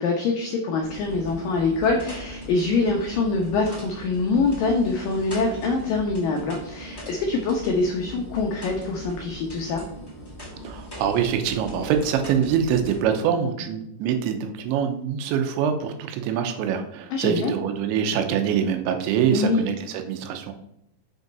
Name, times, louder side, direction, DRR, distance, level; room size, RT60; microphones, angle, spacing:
voice 1, 0.0-9.8 17.1-17.5 19.3-19.6, left 3 dB, 85° left, 1 dB, 1.9 m, -24 dB
sound 1, 0.8-13.0, equal, 10° left, 1.4 m, -39 dB
voice 2, 10.6-20.5, right 8 dB, 90° right, 6 dB, 3.0 m, -24 dB
6.8 x 5.3 x 5.2 m, 0.77 s
omnidirectional pair, 5.2 m